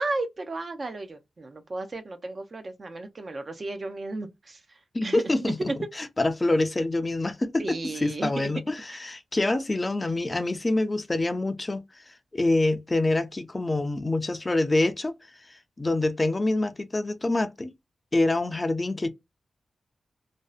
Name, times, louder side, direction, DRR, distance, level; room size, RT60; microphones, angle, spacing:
voice 1, 0.0-5.2 5.6-5.7 7.6-8.5 8.9-9.0, right 2 dB, 45° right, 0.5 m, -34 dB
voice 2, 4.9-5.6 6.2-11.8 12.3-15.1 15.8-17.7 18.1-19.1, left 2 dB, 25° left, 0.4 m, -26 dB
2.6 x 2.0 x 2.3 m
wide cardioid pair, 100°, 0 cm